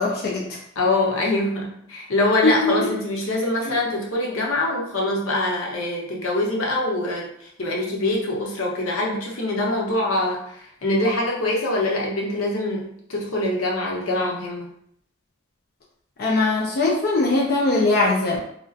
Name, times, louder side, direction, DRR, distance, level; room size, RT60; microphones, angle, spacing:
voice 1, 0.0-0.6 2.4-2.9 3.7-3.8 16.2-18.4, left 2 dB, 45° left, -3 dB, 0.4 m, -21 dB
voice 2, 0.8-14.7, left 2 dB, 85° left, -2 dB, 0.8 m, -24 dB
2.4 x 2.2 x 3.8 m, 0.69 s
head